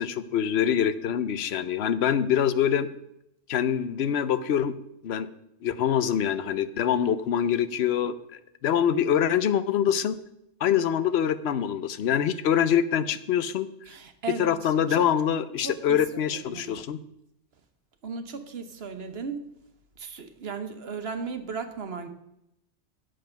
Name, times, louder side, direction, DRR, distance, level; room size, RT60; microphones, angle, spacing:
voice 1, 0.0-2.9 3.5-4.8 5.0-5.3 5.6-10.2 10.6-13.7 14.4-17.0, left 9 dB, 70° left, 13 dB, 0.9 m, -25 dB
voice 2, 13.9-15.1 15.6-16.8 18.0-19.4 20.0-22.1, right 5 dB, 60° right, 8 dB, 1.3 m, -36 dB
9.2 x 7.5 x 5.8 m, 0.81 s
omnidirectional pair, 1.2 m